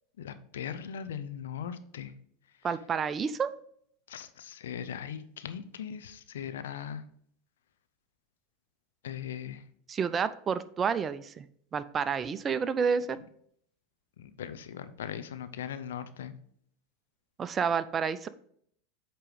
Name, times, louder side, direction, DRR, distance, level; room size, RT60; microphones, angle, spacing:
voice 1, 0.2-2.1 4.1-7.0 9.0-9.6 14.2-16.3, left 8 dB, 75° left, 11 dB, 0.6 m, -39 dB
voice 2, 2.6-3.5 9.9-11.5 11.7-13.2 17.4-18.3, right 6 dB, 30° right, 14 dB, 0.4 m, -29 dB
8.2 x 3.0 x 5.0 m, 0.64 s
hypercardioid pair, 85°, 0 cm